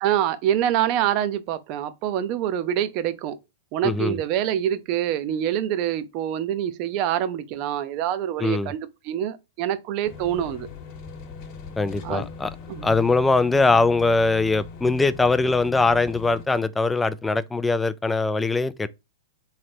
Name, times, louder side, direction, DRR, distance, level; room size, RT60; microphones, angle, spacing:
voice 1, 0.0-3.4 3.7-8.8 9.0-10.7 12.0-12.2 12.7-13.0, right 10 dB, 40° right, 0.6 m, -25 dB
voice 2, 3.8-4.2 8.4-8.7 11.8-12.5 12.8-18.9, left 3 dB, 10° left, 0.3 m, -21 dB
sound 1, 10.0-16.4, left 5 dB, 45° left, 1.1 m, -40 dB
3.8 x 3.2 x 4.4 m
hypercardioid pair, 135°, 0 cm